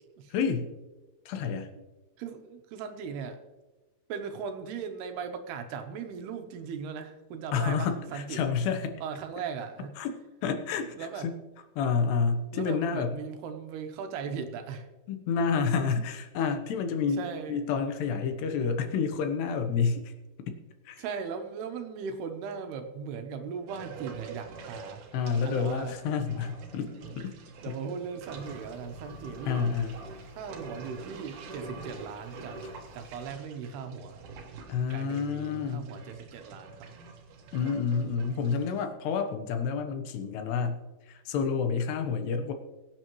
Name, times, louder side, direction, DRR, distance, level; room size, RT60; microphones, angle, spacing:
voice 1, 0.3-0.7 1.3-1.7 7.5-9.0 10.0-11.4 11.8-13.2 15.1-20.1 20.5-20.6 20.9-21.0 25.1-27.4 29.5-30.0 34.7-35.9 37.5-42.5, left 5 dB, 80° left, 6 dB, 3.1 m, -29 dB
voice 2, 2.2-3.4 4.1-8.4 9.0-9.9 10.9-11.3 12.5-14.9 17.2-17.6 21.0-25.0 25.4-25.9 26.9-27.2 27.6-29.7 30.4-32.6 32.9-34.2 34.9-36.9, right 6 dB, 75° right, 6 dB, 3.0 m, -38 dB
sound 1, 23.7-38.8, right 4 dB, 60° right, 2.6 m, -46 dB
sound 2, 28.2-33.3, left 6 dB, 45° left, 4.8 m, -56 dB
22.5 x 9.1 x 3.1 m, 1.1 s
omnidirectional pair, 4.8 m